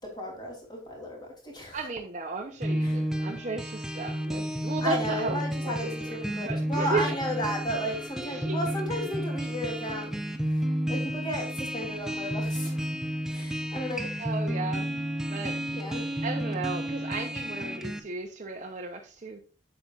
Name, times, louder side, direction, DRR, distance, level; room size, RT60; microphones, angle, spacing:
voice 1, 0.0-1.9 2.8-3.0 4.8-10.1 10.9-12.8 13.3-14.1 15.7-16.0, equal, 25° left, 3.2 m, -34 dB
voice 2, 1.7-6.2 6.5-7.2 8.2-8.6 14.2-14.9 15.3-15.6 16.2-19.4, right 3 dB, 45° right, 0.8 m, -34 dB
sound 1, 2.6-18.0, equal, 5° right, 0.7 m, -31 dB
8.3 x 7.7 x 2.5 m
head